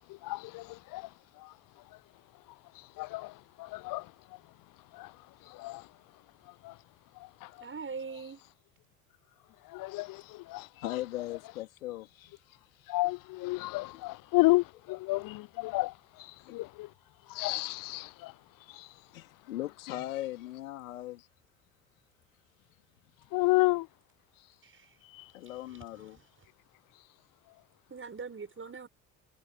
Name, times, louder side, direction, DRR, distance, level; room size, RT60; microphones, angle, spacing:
voice 1, 0.1-1.1 1.4-1.5 2.8-4.1 4.9-5.1 5.5-5.9 6.6-6.8 7.2-7.5 9.7-10.7 12.9-16.9 17.3-18.3 18.7-18.9 23.3-23.9 25.1-25.3, left 21 dB, 55° left, 0.7 m, -31 dB
voice 2, 7.6-8.4 24.6-24.9 27.9-28.9, right 5 dB, 30° right, 7.5 m, -41 dB
voice 3, 10.8-12.3 13.9-14.1 16.5-16.6 19.1-21.2 25.3-26.2, left 15 dB, 80° left, 3.1 m, -39 dB
figure-of-eight pair, 55°, 41 cm